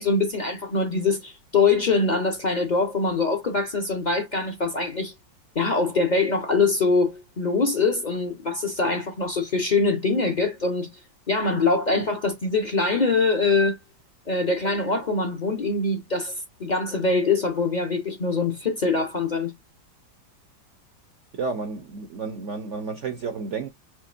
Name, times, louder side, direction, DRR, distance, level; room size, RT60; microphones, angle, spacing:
voice 1, 0.0-5.1 5.5-10.9 11.3-13.8 14.3-16.3 16.6-19.5, left 3 dB, 40° left, 0.6 m, -23 dB
voice 2, 21.3-23.7, right 4 dB, 65° right, 0.7 m, -31 dB
5.1 x 2.8 x 2.5 m
omnidirectional pair, 2.0 m